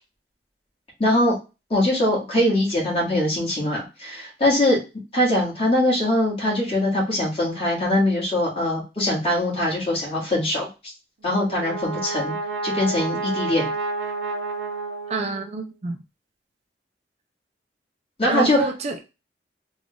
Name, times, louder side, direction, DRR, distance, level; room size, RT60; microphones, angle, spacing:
voice 1, 1.0-1.3 1.7-4.8 5.1-10.7 11.2-12.3 12.6-13.7 18.2-18.6, left 1 dB, 35° left, 1.8 m, -22 dB
Brass instrument, 11.2-15.7, right 3 dB, 70° right, 0.7 m, -30 dB
voice 2, 15.1-16.0 18.2-19.0, right 3 dB, 40° right, 0.4 m, -27 dB
3.7 x 2.4 x 3.4 m
head